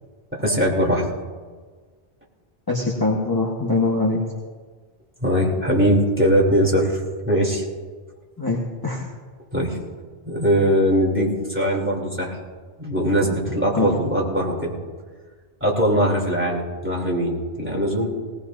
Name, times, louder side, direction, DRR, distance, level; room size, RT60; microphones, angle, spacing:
voice 1, 0.3-1.1 5.2-7.0 7.2-7.6 9.5-9.8 10.3-12.4 12.8-14.8 15.6-18.1, equal, 10° right, -2 dB, 3.1 m, -21 dB
voice 2, 2.7-4.2 8.4-9.1 13.7-13.9, left 3 dB, 20° left, -3 dB, 1.4 m, -23 dB
19.5 x 19.0 x 2.7 m, 1.5 s
omnidirectional pair, 1.1 m